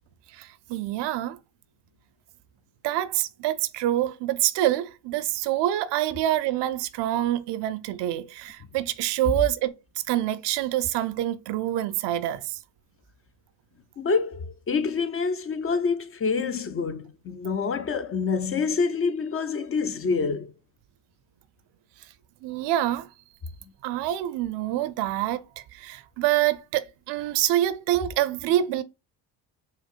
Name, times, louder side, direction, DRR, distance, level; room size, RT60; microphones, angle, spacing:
voice 1, 0.3-1.4 2.8-9.7 10.1-12.6 22.4-23.1 23.8-28.8, right 13 dB, 70° right, 0.5 m, -26 dB
voice 2, 14.0-20.5, left 5 dB, 35° left, 0.4 m, -27 dB
5.1 x 2.0 x 2.3 m
supercardioid pair, 60°, 43 cm